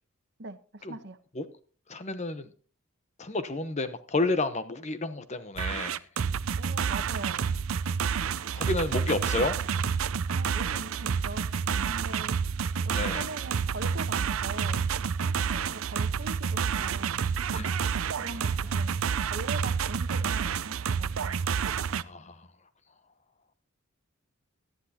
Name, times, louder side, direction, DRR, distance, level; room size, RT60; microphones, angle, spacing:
voice 1, 0.4-1.2 6.6-7.5 10.3-12.4 12.8-14.9 15.3-17.2 18.1-21.5, right 2 dB, 55° right, 10 dB, 1.1 m, -41 dB
voice 2, 1.9-2.5 3.2-6.0 8.5-9.6 12.9-13.2 17.5-17.7 18.1-18.2 22.0-22.5, left 2 dB, 35° left, 11 dB, 0.9 m, -30 dB
sound 1, 5.6-22.0, right 6 dB, 80° right, 0.5 m, -29 dB
18.0 x 12.0 x 2.9 m, 0.40 s
head